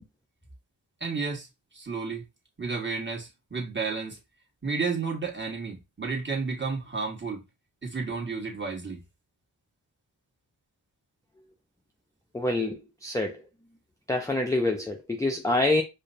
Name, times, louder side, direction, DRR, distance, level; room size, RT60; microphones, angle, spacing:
voice 1, 1.0-1.5 1.7-2.2 2.6-4.2 4.6-7.4 7.8-9.0, right 4 dB, 25° right, 1.5 m, -32 dB
voice 2, 12.3-13.4 14.1-15.8, left 2 dB, 10° left, 0.5 m, -26 dB
4.9 x 2.1 x 2.7 m
cardioid pair, 40°, 43 cm